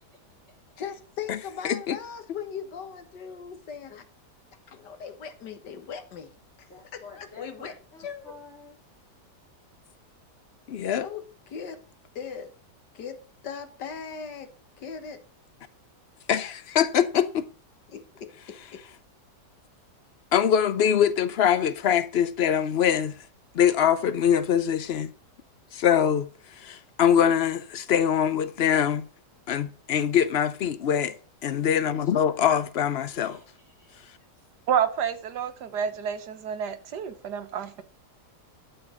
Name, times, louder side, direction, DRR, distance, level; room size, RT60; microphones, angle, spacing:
voice 1, 0.8-4.1 4.7-6.3 6.6-8.4 11.0-11.8 12.2-12.6 12.9-14.5 14.8-15.2 17.9-18.8, left 7 dB, 85° left, 1.9 m, -39 dB
voice 2, 1.6-2.0 10.7-11.0 16.3-17.4 20.3-23.1 23.5-25.1 25.7-26.3 26.6-29.0 29.5-31.1 31.4-33.3, left 9 dB, 65° left, 0.6 m, -23 dB
voice 3, 6.7-8.8 31.7-32.4 33.1-34.3, left 3 dB, 40° left, 3.3 m, -49 dB
voice 4, 34.7-37.8, right 8 dB, 75° right, 1.6 m, -29 dB
12.5 x 5.3 x 6.3 m
omnidirectional pair, 1.8 m